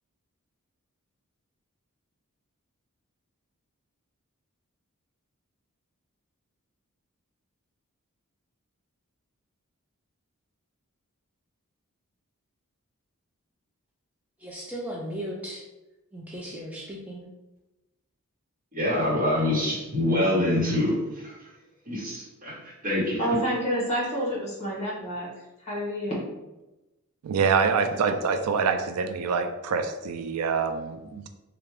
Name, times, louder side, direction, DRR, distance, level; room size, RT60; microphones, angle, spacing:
voice 1, 14.4-15.6 16.1-17.2, equal, 5° right, -3 dB, 0.4 m, -36 dB
voice 2, 18.7-21.4 21.8-23.4, left 1 dB, 40° right, -6 dB, 1.3 m, -26 dB
voice 3, 23.2-25.3 25.6-26.2, equal, 30° left, -5 dB, 1.3 m, -28 dB
voice 4, 27.2-31.3, right 5 dB, 85° right, 7 dB, 0.4 m, -25 dB
3.2 x 2.4 x 3.3 m, 1.0 s
head